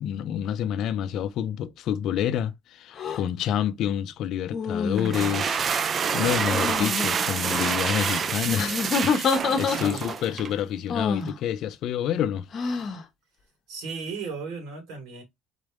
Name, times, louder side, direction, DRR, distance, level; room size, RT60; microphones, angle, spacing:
voice 1, 0.0-12.5, left 10 dB, 55° left, 0.4 m, -28 dB
sound 1, 3.0-3.2 4.5-5.4 6.5-7.1 8.4-10.2 10.9-11.3 12.5-13.0, left 5 dB, 35° left, 0.9 m, -27 dB
sound 2, 5.0-10.6, right 6 dB, 30° right, 0.3 m, -27 dB
voice 2, 9.5-10.0 13.7-15.2, right 4 dB, 85° right, 2.6 m, -36 dB
4.0 x 3.3 x 3.6 m
cardioid pair, 155°, 0 cm